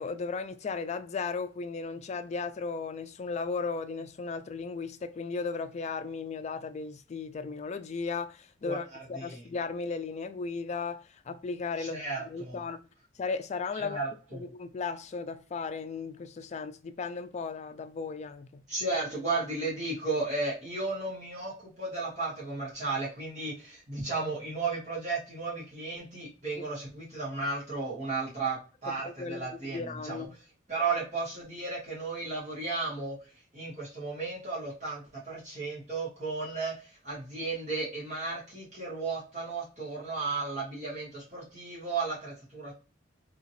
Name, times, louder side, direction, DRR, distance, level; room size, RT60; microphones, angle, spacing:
voice 1, 0.0-12.8 13.2-14.0 14.3-18.6 29.0-30.3, left 4 dB, 35° left, 0.3 m, -36 dB
voice 2, 11.8-12.6 13.7-14.4 18.7-30.3 30.7-33.2 33.5-42.7, right 3 dB, 40° right, 1.4 m, -34 dB
2.8 x 2.8 x 2.6 m
head